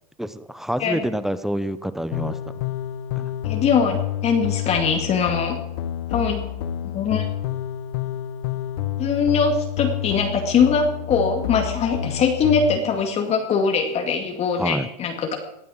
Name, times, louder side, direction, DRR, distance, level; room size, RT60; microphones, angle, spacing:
voice 1, 0.2-2.4 3.2-3.4 14.6-14.9, equal, ahead, 14 dB, 0.9 m, -27 dB
sound 1, 2.1-12.8, left 11 dB, 65° left, 1.6 m, -29 dB
voice 2, 3.4-5.6 6.1-6.5 6.9-7.3 9.0-15.4, left 5 dB, 30° left, 3 dB, 2.2 m, -22 dB
19.0 x 11.0 x 6.3 m, 0.82 s
hypercardioid pair, 120°, 21 cm